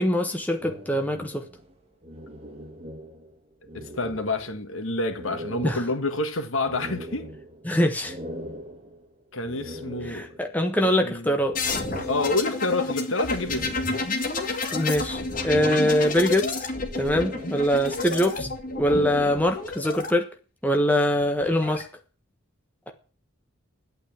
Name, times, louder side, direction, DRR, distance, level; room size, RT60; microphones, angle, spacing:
voice 1, 0.0-1.4 5.6-5.8 7.6-8.1 10.0-11.6 14.7-16.6 16.9-18.5 18.8-20.3 20.6-21.9, equal, 10° left, 1.4 m, -23 dB
sound 1, 0.6-3.4 3.6-4.8 5.2-10.6 11.5-12.8 13.3-14.6 15.0-16.5 16.8-18.1 18.6-19.9, equal, 30° right, 2.5 m, -40 dB
voice 2, 3.7-7.3 7.7-7.8 9.3-10.3 10.8-11.4 12.1-13.8, left 2 dB, 75° left, 1.8 m, -28 dB
sound 2, 11.5-20.1 21.2-21.8, left 3 dB, 40° left, 2.0 m, -30 dB
11.5 x 8.7 x 8.7 m
head